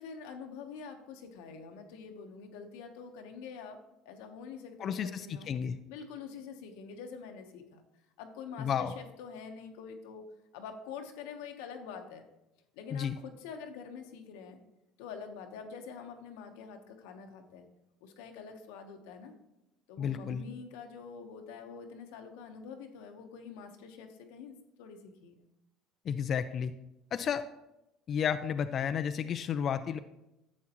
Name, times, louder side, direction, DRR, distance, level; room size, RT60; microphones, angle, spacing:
voice 1, 0.0-3.8 4.0-5.5 5.9-7.8 8.2-10.3 10.5-12.2 12.8-14.6 15.0-17.6 18.0-19.3 19.9-25.3, left 6 dB, 90° left, 5 dB, 1.1 m, -46 dB
voice 2, 4.8-5.8 8.6-8.9 12.9-13.2 20.0-20.4 26.1-26.7 27.1-27.4 28.1-30.0, left 8 dB, 40° left, 10 dB, 0.3 m, -32 dB
11.0 x 7.5 x 3.0 m, 0.93 s
cardioid pair, 135°, 0 cm